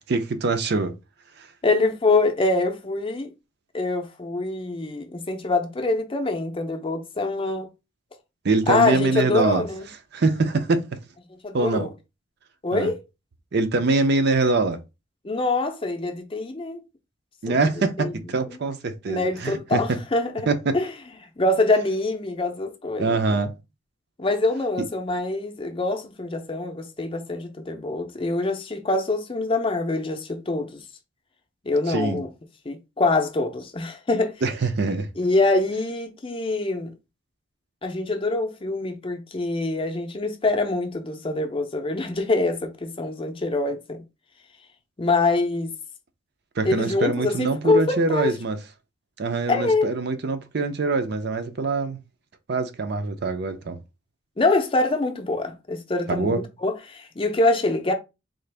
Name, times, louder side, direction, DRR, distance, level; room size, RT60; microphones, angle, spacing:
voice 1, 0.1-0.9 1.4-1.5 8.4-9.6 10.1-11.0 11.5-11.9 12.7-12.9 13.5-14.8 17.4-20.0 20.5-20.8 23.0-23.5 31.9-32.2 34.4-35.1 46.6-48.6 49.2-52.0 52.5-53.8 56.1-56.4, right 3 dB, 55° right, 0.5 m, -24 dB
voice 2, 1.6-3.3 3.7-7.7 8.7-9.8 11.4-11.9 12.6-13.0 15.2-16.8 17.5-17.6 18.0-18.1 18.5-18.6 19.1-20.5 20.7-20.9 21.2-23.4 24.2-30.8 31.6-32.3 32.7-34.3 35.2-36.9 37.8-44.0 45.0-45.8 46.6-48.3 49.5-49.9 54.4-57.9, left 2 dB, 25° left, 0.6 m, -24 dB
3.8 x 2.4 x 3.3 m
head